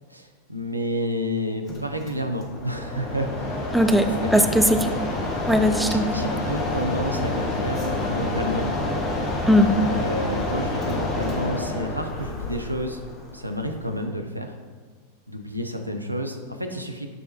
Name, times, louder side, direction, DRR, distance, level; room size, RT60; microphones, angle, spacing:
voice 1, 0.1-3.8 4.2-4.4 5.8-8.7 9.8-13.0 13.3-14.5 15.3-17.1, equal, 90° right, 5 dB, 0.5 m, -30 dB
Mechanisms, 1.7-14.0, left 2 dB, 30° left, 1.0 m, -28 dB
voice 2, 3.7-4.9 5.5-6.2 9.5-9.7, equal, ahead, 7 dB, 0.3 m, -19 dB
9.1 x 3.5 x 3.1 m, 1.5 s
figure-of-eight pair, 90°, 0 cm